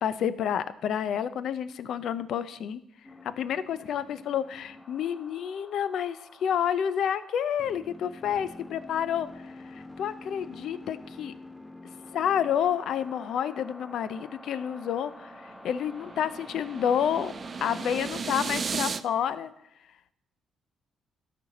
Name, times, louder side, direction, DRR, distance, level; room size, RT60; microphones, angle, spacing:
voice 1, 0.0-2.8 3.2-11.3 12.1-17.3 17.6-19.5, left 9 dB, 70° left, 14 dB, 0.5 m, -29 dB
sound 1, 3.0-18.1, left 2 dB, 10° left, 0.6 m, -48 dB
sound 2, 14.7-19.0, right 5 dB, 40° right, 0.4 m, -35 dB
12.5 x 4.4 x 4.1 m, 0.79 s
cardioid pair, 90°, 0 cm